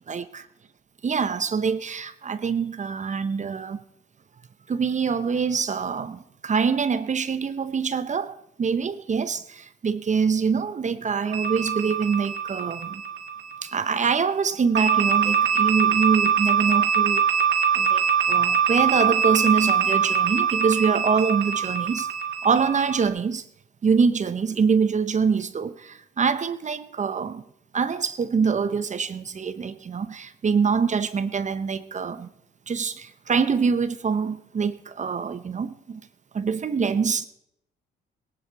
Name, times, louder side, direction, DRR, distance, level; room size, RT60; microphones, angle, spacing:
voice 1, 1.0-3.8 4.7-13.0 13.6-17.2 17.7-22.1 22.4-23.4 23.8-27.4 27.7-32.3 32.7-36.0 36.3-37.3, right 5 dB, 35° right, 0.9 m, -25 dB
sound 1, 11.3-13.9 14.8-23.1, right 7 dB, 65° right, 2.4 m, -23 dB
19.0 x 11.0 x 4.7 m
cardioid pair, 90°, 20 cm